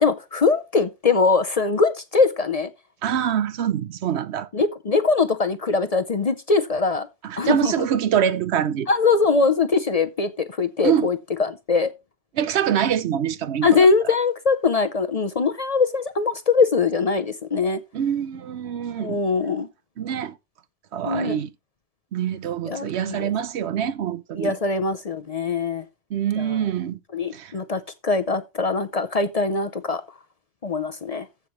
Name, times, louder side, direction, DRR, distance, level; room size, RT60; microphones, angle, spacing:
voice 1, 0.0-2.7 4.5-7.1 7.4-7.9 8.9-11.9 13.6-17.8 19.0-19.7 21.0-21.4 22.7-23.3 24.4-25.9 26.4-26.7 27.1-30.0 30.6-31.3, left 4 dB, 40° left, 0.6 m, -22 dB
voice 2, 3.0-4.5 7.2-8.9 10.8-11.1 12.4-13.9 17.9-19.2 20.0-20.4 20.9-21.5 22.1-24.5 26.1-27.0 27.3-27.5, right 9 dB, 75° right, 0.9 m, -25 dB
15.0 x 5.9 x 3.1 m
omnidirectional pair, 1.1 m